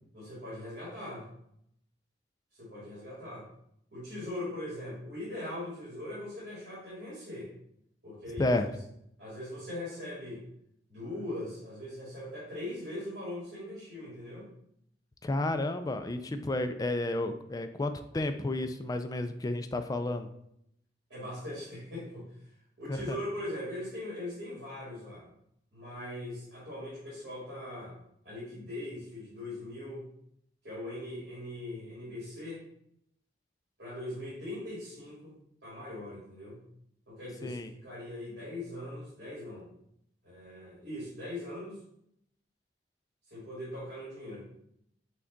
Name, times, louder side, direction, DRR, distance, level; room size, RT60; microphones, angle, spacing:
voice 1, 0.1-1.3 2.6-3.5 3.9-7.5 8.0-8.7 9.2-10.4 10.9-14.4 21.1-22.3 22.8-25.3 25.7-28.0 28.2-30.1 30.6-32.6 33.8-36.6 37.1-39.7 40.2-41.8 43.3-44.5, left 1 dB, 70° right, -8 dB, 1.9 m, -40 dB
voice 2, 8.4-8.7 15.2-20.3 22.9-23.2 37.4-37.7, left 2 dB, 20° left, 8 dB, 0.3 m, -31 dB
6.0 x 2.3 x 3.8 m, 0.74 s
head